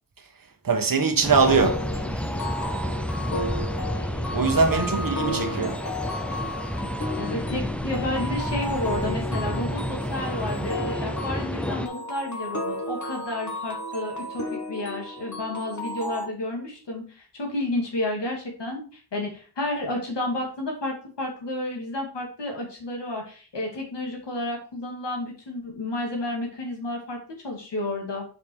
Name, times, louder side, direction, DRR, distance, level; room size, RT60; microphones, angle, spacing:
voice 1, 0.6-1.8 4.3-5.8, right 4 dB, 55° right, 1.3 m, -21 dB
sound 1, 1.2-11.9, equal, 5° left, 0.7 m, -30 dB
sound 2, 1.5-16.3, left 1 dB, 45° left, 1.7 m, -33 dB
voice 2, 5.1-5.7 7.2-27.2 27.4-28.3, left 1 dB, 90° left, 2.5 m, -31 dB
6.8 x 5.5 x 4.7 m
wide cardioid pair, 115°, 41 cm